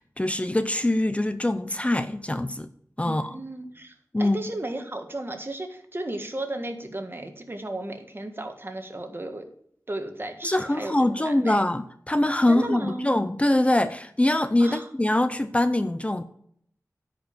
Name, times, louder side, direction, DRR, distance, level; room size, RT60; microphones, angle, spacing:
voice 1, 0.0-2.7 3.0-3.2 4.1-4.4 10.4-16.2, left 1 dB, 20° left, 11 dB, 0.6 m, -23 dB
voice 2, 3.0-9.5 9.9-11.6 12.5-13.1 14.6-14.9, right 1 dB, 35° right, 5 dB, 1.6 m, -35 dB
9.6 x 5.2 x 7.3 m, 0.67 s
wide cardioid pair, 55°, 6 cm